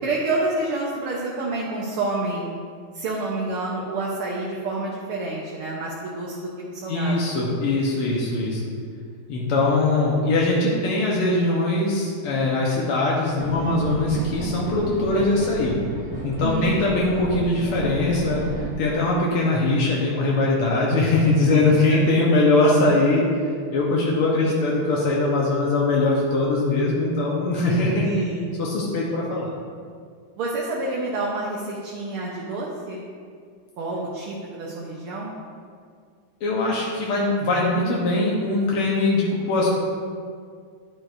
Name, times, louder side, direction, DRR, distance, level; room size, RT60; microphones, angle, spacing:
voice 1, 0.0-2.5 2.9-7.3 16.4-16.7 21.5-21.6 21.9-22.0 28.0-28.5 30.4-33.0 33.8-35.3, right 2 dB, 75° right, -4 dB, 1.9 m, -28 dB
voice 2, 6.9-8.6 9.3-15.8 16.2-23.3 23.7-28.1 28.6-29.5 36.4-39.7, left 2 dB, 85° left, -4 dB, 2.0 m, -21 dB
sound 1, 13.4-18.7, right 1 dB, 50° right, 2.2 m, -32 dB
11.0 x 10.0 x 2.6 m, 2.1 s
omnidirectional pair, 2.4 m